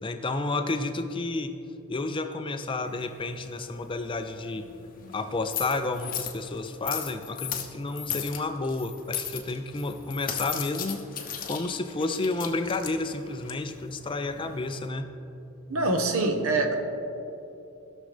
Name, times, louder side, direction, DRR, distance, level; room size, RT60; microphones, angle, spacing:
voice 1, 0.0-1.5 1.9-4.7 5.1-11.1 11.4-15.1, left 2 dB, 25° left, 8 dB, 0.4 m, -31 dB
sound 1, 2.8-14.9, left 9 dB, 40° left, 0.9 m, -38 dB
voice 2, 15.7-16.7, right 2 dB, 80° right, 5 dB, 1.0 m, -24 dB
16.5 x 6.3 x 3.4 m, 2.8 s
head